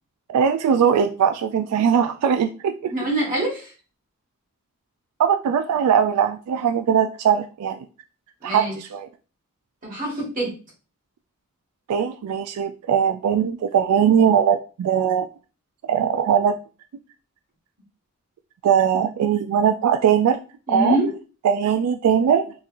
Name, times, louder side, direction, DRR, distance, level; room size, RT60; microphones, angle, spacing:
voice 1, 0.3-2.9 5.2-7.8 8.4-9.1 11.9-15.3 15.8-16.6 18.6-20.4 20.7-21.0 21.4-22.5, right 8 dB, 85° right, 9 dB, 0.3 m, -20 dB
voice 2, 2.9-3.7 8.4-8.7 9.8-10.5 20.7-21.1, right 1 dB, 40° right, -3 dB, 1.5 m, -24 dB
3.9 x 2.8 x 2.5 m, 0.34 s
head